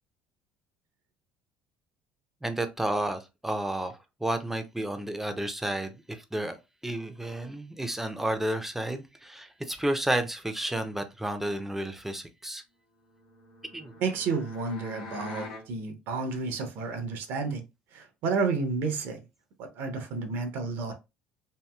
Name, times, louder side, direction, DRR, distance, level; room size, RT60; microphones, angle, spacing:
voice 1, 2.4-6.6 6.8-12.6 13.7-13.9, right 1 dB, 5° right, 0.6 m, -31 dB
sound 1, 13.1-15.7, left 3 dB, 85° left, 1.3 m, -44 dB
voice 2, 14.0-17.6 17.9-19.2 19.6-20.9, right 4 dB, 65° right, 0.7 m, -31 dB
2.8 x 2.7 x 2.3 m
hypercardioid pair, 75°, 4 cm